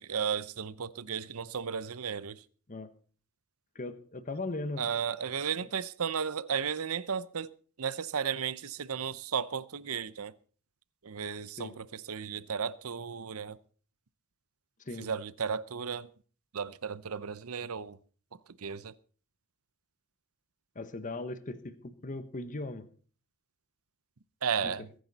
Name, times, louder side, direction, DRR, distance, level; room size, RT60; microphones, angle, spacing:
voice 1, 0.0-2.4 4.8-7.5 7.8-10.3 11.0-13.6 15.0-16.1 16.5-18.0 18.6-18.9 24.4-24.9, right 7 dB, 75° right, 0.7 m, -34 dB
voice 2, 3.7-4.9 11.6-11.7 14.9-15.1 20.7-22.9 24.6-24.7, left 2 dB, 35° left, 1.1 m, -38 dB
22.5 x 10.0 x 4.1 m
head